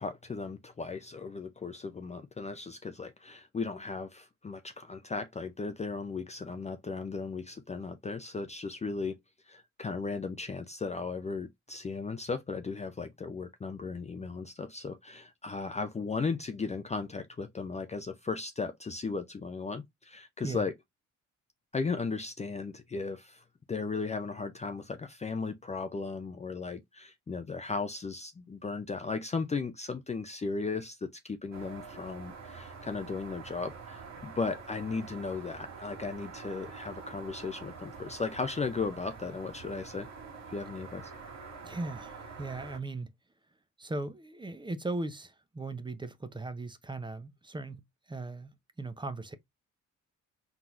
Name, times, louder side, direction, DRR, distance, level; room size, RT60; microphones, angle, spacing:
voice 1, 0.0-9.1 9.5-20.7 21.7-23.4 23.7-40.1 40.5-41.1, left 4 dB, 20° left, 0.5 m, -36 dB
sound 1, 31.5-42.8, right 5 dB, 65° right, 1.8 m, -46 dB
voice 2, 41.6-43.1 43.8-49.3, right 2 dB, 15° right, 0.7 m, -38 dB
4.5 x 3.8 x 2.5 m
cardioid pair, 90°, 30 cm